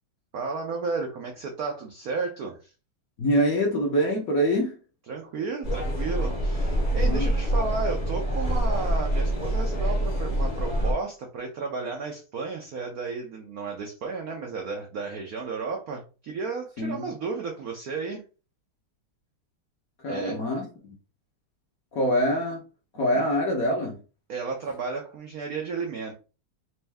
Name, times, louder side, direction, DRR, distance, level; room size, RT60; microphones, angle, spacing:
voice 1, 0.3-2.7 5.1-18.2 20.1-20.4 23.1-23.3 24.3-26.1, right 4 dB, 75° right, 2 dB, 0.8 m, -33 dB
voice 2, 3.2-4.8 7.0-7.3 16.8-17.0 20.0-20.6 21.9-22.6 22.9-24.0, equal, 55° left, 0 dB, 1.1 m, -24 dB
sound 1, 5.6-10.9, right 1 dB, 30° left, 0.8 m, -25 dB
4.4 x 2.6 x 3.4 m, 0.34 s
omnidirectional pair, 2.4 m